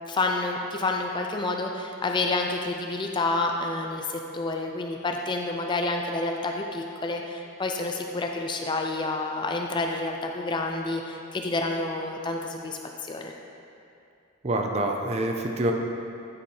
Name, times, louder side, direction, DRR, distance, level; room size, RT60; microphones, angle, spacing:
voice 1, 0.1-13.3, left 2 dB, 20° left, 2 dB, 0.4 m, -29 dB
voice 2, 14.4-15.7, right 1 dB, 30° right, 2 dB, 0.6 m, -26 dB
10.0 x 4.3 x 4.6 m, 2.6 s
head